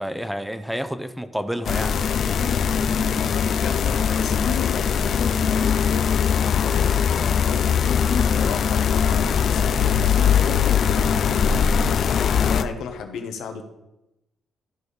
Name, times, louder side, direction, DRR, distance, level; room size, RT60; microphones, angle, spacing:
voice 1, 0.0-2.1, equal, 5° right, 10 dB, 0.7 m, -29 dB
sound 1, 1.6-12.6, left 7 dB, 60° left, 0.5 m, -21 dB
voice 2, 2.4-7.7 8.2-13.6, left 5 dB, 80° left, 6 dB, 1.2 m, -36 dB
13.5 x 5.1 x 4.2 m, 0.94 s
cardioid pair, 90°, 0 cm